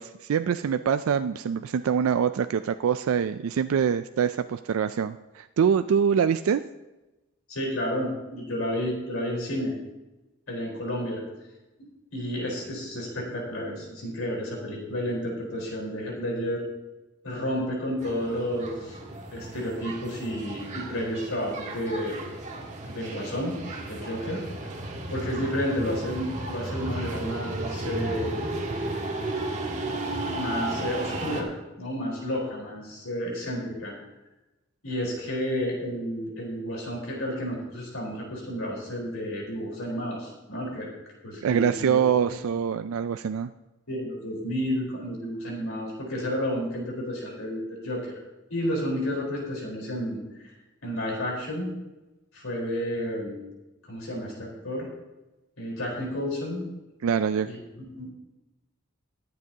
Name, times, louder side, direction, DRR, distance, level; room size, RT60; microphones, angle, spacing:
voice 1, 0.0-6.6 41.4-43.5 57.0-57.5, right 7 dB, 80° right, 11 dB, 0.3 m, -24 dB
voice 2, 7.5-9.7 10.5-11.2 12.1-16.7 17.2-19.0 19.3-22.2 22.9-23.6 23.9-24.8 25.1-28.4 30.4-31.5 31.8-33.9 34.8-40.9 41.2-42.0 42.3-42.4 43.9-48.1 48.5-50.5 50.8-51.7 52.3-53.4 53.9-54.9 55.6-56.7 57.5-57.6 57.9-58.1, equal, 85° left, -2 dB, 4.1 m, -31 dB
sound 1, 18.0-31.4, right 2 dB, 35° right, 1.6 m, -34 dB
21.5 x 7.6 x 2.8 m, 1.1 s
head